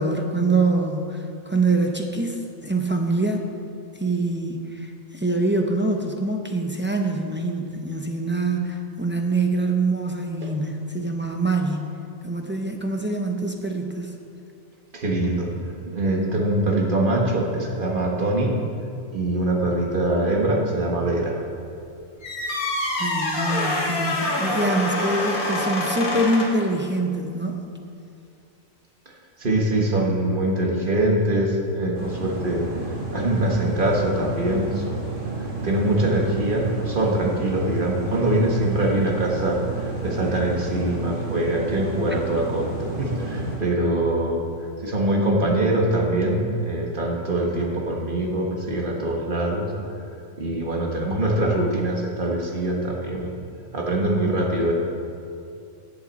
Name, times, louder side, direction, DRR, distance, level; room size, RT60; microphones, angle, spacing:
voice 1, 0.0-3.5 4.0-11.9 12.2-14.1 23.0-27.7, right 2 dB, 15° right, 2 dB, 0.4 m, -24 dB
voice 2, 14.9-15.5 15.9-18.6 19.1-21.4 29.4-32.6 33.1-35.0 35.4-44.4 44.8-49.7 50.4-53.3 53.7-54.7, right 1 dB, 40° right, 0 dB, 1.5 m, -23 dB
sound 1, 22.2-26.7, left 1 dB, 80° left, 1.9 m, -26 dB
sound 2, 31.9-43.6, right 2 dB, 55° right, 2.7 m, -31 dB
14.5 x 7.8 x 4.1 m, 2.5 s
omnidirectional pair, 1.4 m